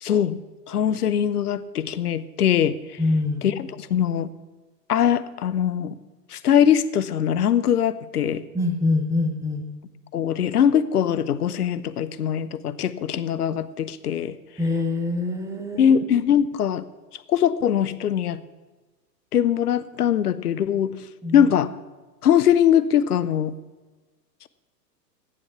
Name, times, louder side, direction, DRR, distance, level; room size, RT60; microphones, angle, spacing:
voice 1, 0.0-0.4 0.7-3.0 3.4-4.3 4.9-6.0 6.3-8.4 10.1-14.4 15.8-16.8 17.3-18.4 19.3-20.9 21.3-21.7 22.2-23.6, left 9 dB, 65° left, 15 dB, 0.9 m, -21 dB
voice 2, 3.0-3.5 8.5-9.7 14.6-15.9 21.2-21.4, left 2 dB, 5° right, 3 dB, 1.5 m, -24 dB
15.0 x 9.8 x 5.9 m, 1.3 s
figure-of-eight pair, 100°, 49 cm